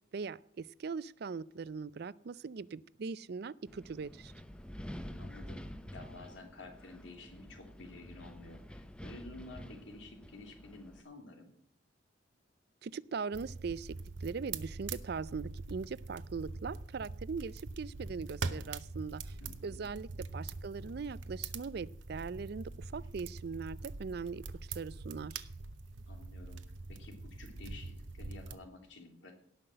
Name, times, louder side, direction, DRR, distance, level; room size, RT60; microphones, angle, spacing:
voice 1, 0.1-4.3 12.8-19.3 19.6-24.4 24.7-25.5, right 5 dB, 55° right, 20 dB, 0.4 m, -40 dB
Wind, 3.7-11.0, equal, 5° left, 0.7 m, -48 dB
voice 2, 5.2-11.5 19.4-19.9 26.1-29.4, left 2 dB, 75° left, 3 dB, 3.1 m, -52 dB
sound 1, 13.3-28.6, right 3 dB, 80° right, 0.9 m, -43 dB
17.5 x 5.9 x 7.8 m, 0.70 s
head